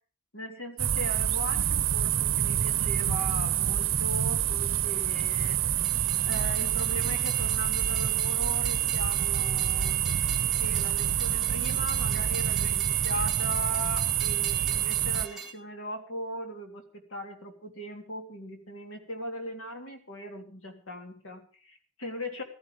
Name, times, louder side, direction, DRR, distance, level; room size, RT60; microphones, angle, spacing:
voice 1, 0.3-6.0 6.2-10.1 10.6-22.4, left 1 dB, 90° left, 4 dB, 3.3 m, -39 dB
sound 1, 0.8-15.3, right 10 dB, 75° right, 0.7 m, -27 dB
Train, 5.8-15.5, right 5 dB, ahead, 2.3 m, -41 dB
15.0 x 14.5 x 5.0 m, 0.39 s
head